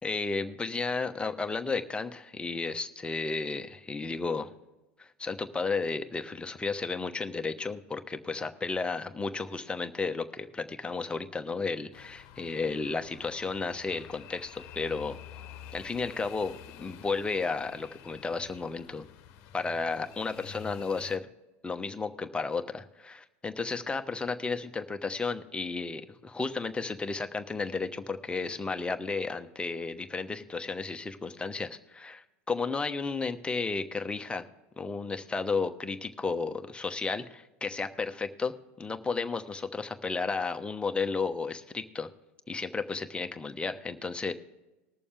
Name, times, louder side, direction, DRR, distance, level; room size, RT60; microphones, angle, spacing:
voice 1, 0.0-4.5 5.0-15.2 15.7-19.0 19.5-21.3 21.6-34.5 34.8-42.1 42.5-44.3, left 4 dB, 15° left, 6 dB, 1.0 m, -33 dB
sound 1, 11.9-21.2, left 9 dB, 55° left, 1.0 m, -49 dB
20.5 x 6.9 x 3.5 m, 1.1 s
hypercardioid pair, 85°, 8 cm